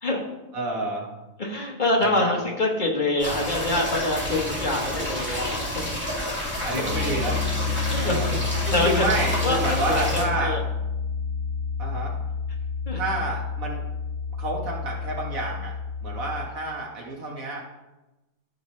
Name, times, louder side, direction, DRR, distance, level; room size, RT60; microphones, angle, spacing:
voice 1, 0.5-1.1 2.0-2.4 6.6-7.5 8.0-8.3 8.6-10.6 11.8-12.3 12.9-13.9 14.4-15.7 16.0-17.6, right 2 dB, 85° right, -1 dB, 2.1 m, -29 dB
voice 2, 1.4-5.9 6.7-6.8 7.8-8.4 8.7-9.1 9.4-10.6 12.9-13.0, left 2 dB, 40° left, 0 dB, 1.3 m, -25 dB
sound 1, 3.2-10.2, equal, 10° right, 2.2 m, -29 dB
Piano, 6.9-16.5, left 5 dB, 60° left, 1.0 m, -29 dB
14.0 x 5.2 x 3.2 m, 1.0 s
omnidirectional pair, 1.4 m